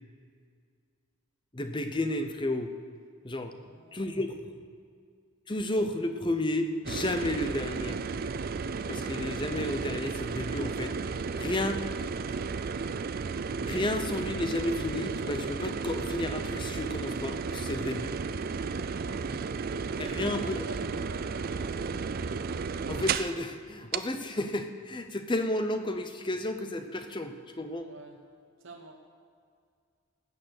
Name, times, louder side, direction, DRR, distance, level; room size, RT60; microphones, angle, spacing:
voice 1, 1.5-2.7 3.2-3.5 3.9-4.5 5.5-8.0 8.9-11.8 13.6-18.2 20.0-20.6 22.9-27.9, left 1 dB, 20° left, 8 dB, 0.7 m, -32 dB
voice 2, 3.5-4.1 11.2-12.6 18.9-21.9 27.7-28.2 28.6-29.0, right 2 dB, 60° right, 2 dB, 1.0 m, -48 dB
sound 1, 6.8-23.4 23.9-24.0, right 5 dB, 40° right, 0.4 m, -33 dB
14.0 x 8.7 x 6.5 m, 2.2 s
head